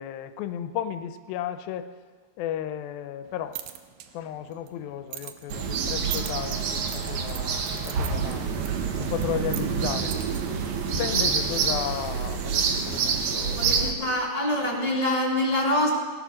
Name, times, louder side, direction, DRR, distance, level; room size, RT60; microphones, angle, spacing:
voice 1, 0.0-1.9 2.4-3.6 4.1-8.5 9.0-10.2 11.0-14.2, left 10 dB, 85° left, 10 dB, 2.5 m, -34 dB
sound 1, 3.3-11.3, right 13 dB, 80° right, 2.5 m, -43 dB
sound 2, 5.5-13.9, right 5 dB, 60° right, 2.1 m, -27 dB
voice 2, 13.6-15.9, left 1 dB, 10° right, -4 dB, 2.2 m, -25 dB
17.5 x 12.0 x 6.3 m, 1.5 s
omnidirectional pair, 4.1 m